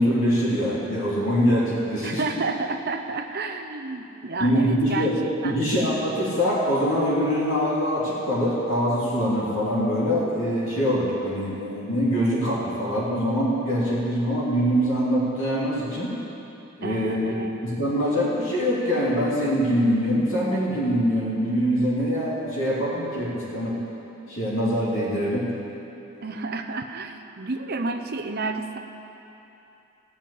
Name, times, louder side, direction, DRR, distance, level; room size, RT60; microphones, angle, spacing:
voice 1, 0.0-2.2 4.4-5.2 5.4-16.1 16.8-23.8 24.3-25.5, equal, 60° left, -7 dB, 2.8 m, -24 dB
voice 2, 2.0-5.6 16.8-17.5 26.2-28.8, right 3 dB, 45° right, 5 dB, 0.7 m, -31 dB
16.0 x 5.8 x 8.5 m, 2.9 s
head